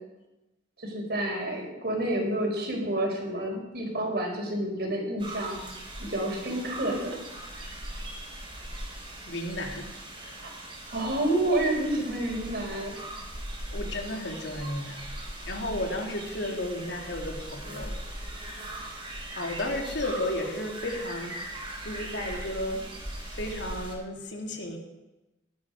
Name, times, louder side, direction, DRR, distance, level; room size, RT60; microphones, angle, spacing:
voice 1, 0.8-5.6 6.0-7.2 10.4-10.5 10.9-13.0, right 1 dB, 55° right, 1 dB, 4.3 m, -29 dB
sound 1, 5.2-23.9, right 1 dB, 25° right, 3.9 m, -40 dB
voice 2, 9.3-10.0 10.2-10.3 13.7-15.0 15.4-18.0 18.8-18.9 19.4-21.4 21.8-22.8 23.3-24.8, left 1 dB, 70° left, 2 dB, 2.8 m, -33 dB
17.0 x 12.5 x 5.0 m, 1.0 s
head